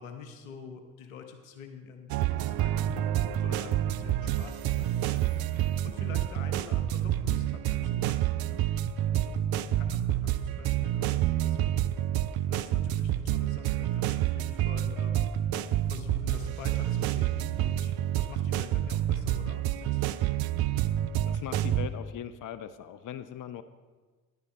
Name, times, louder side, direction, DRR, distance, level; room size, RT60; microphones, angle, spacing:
voice 1, 0.0-11.8 12.5-15.5 15.9-20.2, left 6 dB, 90° left, 6 dB, 1.1 m, -47 dB
sound 1, 2.1-21.9, right 12 dB, 65° right, 0.6 m, -28 dB
voice 2, 21.2-23.6, left 9 dB, 50° left, 12 dB, 0.7 m, -39 dB
10.5 x 10.5 x 4.4 m, 1.4 s
hypercardioid pair, 45°, 39 cm